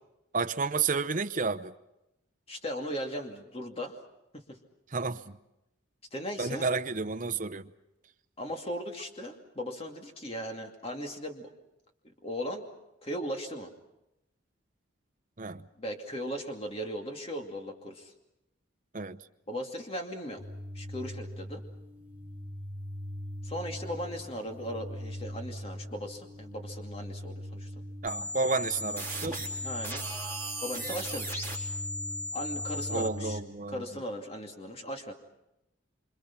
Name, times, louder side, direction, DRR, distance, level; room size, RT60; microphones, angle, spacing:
voice 1, 0.3-1.7 4.9-5.4 6.4-7.7 15.4-15.7 18.9-19.2 28.0-29.5 32.9-33.8, right 4 dB, 40° right, 0.8 m, -31 dB
voice 2, 2.5-4.0 4.3-4.6 6.1-6.7 8.4-11.5 12.2-12.7 13.0-13.7 15.8-18.1 19.5-20.4 20.7-21.6 23.4-27.7 29.6-30.0 30.6-31.5 32.3-33.4 33.7-35.1, equal, 30° left, 2.4 m, -37 dB
sound 1, 20.4-33.4, equal, 10° right, 1.4 m, -41 dB
sound 2, 28.1-33.1, equal, 10° left, 4.0 m, -36 dB
27.0 x 26.5 x 5.9 m
head